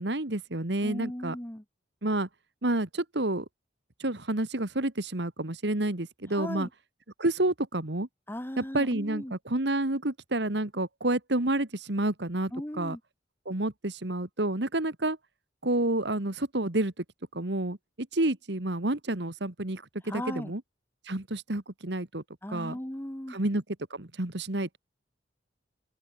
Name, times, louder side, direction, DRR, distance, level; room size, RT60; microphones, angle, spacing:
voice 1, 0.0-1.4 2.0-2.3 2.6-3.5 4.0-6.7 7.2-8.1 8.6-13.0 13.5-15.2 15.6-17.0 17.3-17.8 18.1-20.6 21.1-22.2 22.5-22.8 23.3-23.6 23.9-24.8, right 1 dB, 65° right, 2.0 m, -29 dB
voice 2, 0.8-1.6 6.3-6.7 8.3-9.3 12.5-13.0 20.0-20.5 22.4-23.4, left 1 dB, 10° left, 1.3 m, -37 dB
open air
head